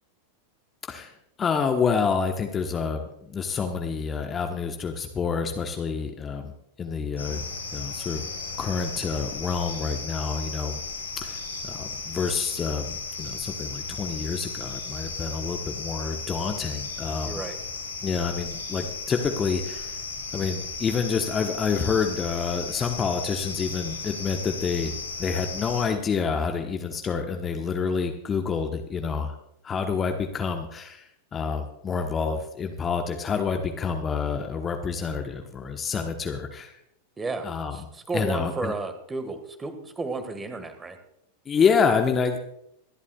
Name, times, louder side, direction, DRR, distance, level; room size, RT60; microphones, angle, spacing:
voice 1, 1.4-6.5 6.8-7.5 7.7-8.3 8.6-10.8 11.2-17.4 18.0-20.0 20.3-24.9 25.2-29.3 29.6-31.0 31.3-36.7 37.4-37.8 38.1-38.7 41.5-42.4, left 5 dB, 20° left, 5 dB, 1.2 m, -28 dB
sound 1, 7.2-25.9, left 4 dB, 80° left, 3.4 m, -35 dB
voice 2, 17.2-17.6 37.2-41.0, right 3 dB, 15° right, 8 dB, 1.7 m, -33 dB
25.5 x 11.5 x 2.4 m, 0.77 s
figure-of-eight pair, 90°, 0 cm